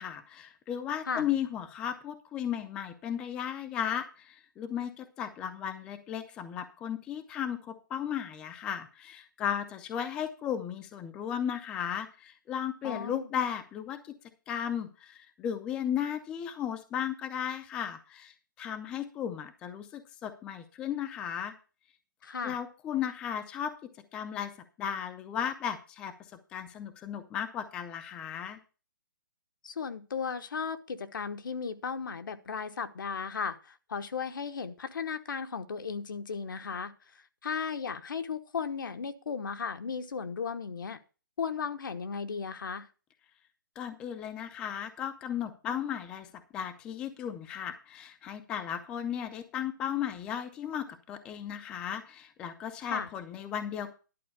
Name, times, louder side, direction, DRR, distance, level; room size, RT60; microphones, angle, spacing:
voice 1, 0.0-14.1 14.5-21.5 22.4-23.7 24.1-28.6 43.8-53.9, left 9 dB, 10° left, 9 dB, 0.4 m, -35 dB
voice 2, 12.8-13.3 22.2-22.6 29.6-36.9 37.4-41.0 41.4-42.9 52.9-53.1, left 6 dB, 75° left, 9 dB, 1.1 m, -35 dB
11.0 x 4.4 x 8.0 m, 0.34 s
hypercardioid pair, 170°, 11 cm